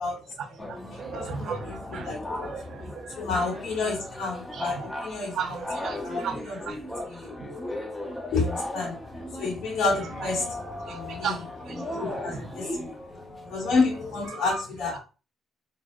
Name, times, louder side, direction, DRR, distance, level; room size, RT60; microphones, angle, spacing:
voice 1, 0.3-3.5 4.5-4.9 5.3-6.4 6.7-6.8 7.4-7.5 9.8-12.6 14.2-14.6, right 6 dB, 65° right, 1.0 m, -37 dB
sound 1, 0.6-14.3, left 1 dB, 15° left, 0.8 m, -37 dB
voice 2, 1.1-2.5 3.2-5.6 6.0-6.6 7.1-7.3 8.3-9.0 9.4-10.5 10.9-11.4 11.7-12.9 13.5-15.0, left 3 dB, 80° left, 1.9 m, -29 dB
3.9 x 3.5 x 2.4 m
cardioid pair, 90°, 0 cm